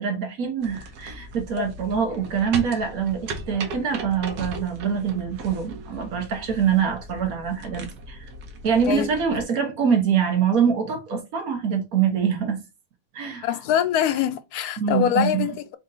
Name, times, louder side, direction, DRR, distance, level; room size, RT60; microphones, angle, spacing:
voice 1, 0.0-8.2 8.6-12.6 13.1-13.5 14.8-15.4, right 7 dB, 65° right, 1.5 m, -24 dB
sound 1, 0.6-9.4, right 2 dB, 85° right, 1.4 m, -38 dB
voice 2, 13.4-15.8, left 10 dB, 80° left, 1.1 m, -24 dB
4.3 x 2.7 x 3.8 m
omnidirectional pair, 1.6 m